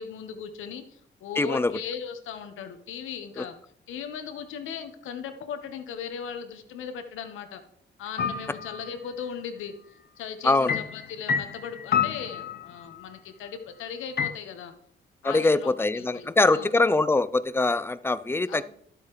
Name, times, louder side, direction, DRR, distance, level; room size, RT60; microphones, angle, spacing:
voice 1, 0.0-3.6 3.9-7.6 8.0-9.7 10.2-14.7 15.2-16.7 18.5-18.6, left 7 dB, 85° left, 7 dB, 1.3 m, -38 dB
voice 2, 1.4-1.7 3.4-3.5 10.4-10.8 15.2-18.6, left 3 dB, 10° left, 15 dB, 0.5 m, -23 dB
sound 1, 8.2-8.9 10.7-13.0 14.2-14.3, left 7 dB, 55° left, 0.9 m, -28 dB
12.0 x 8.2 x 3.2 m, 0.66 s
cardioid pair, 90°, 20 cm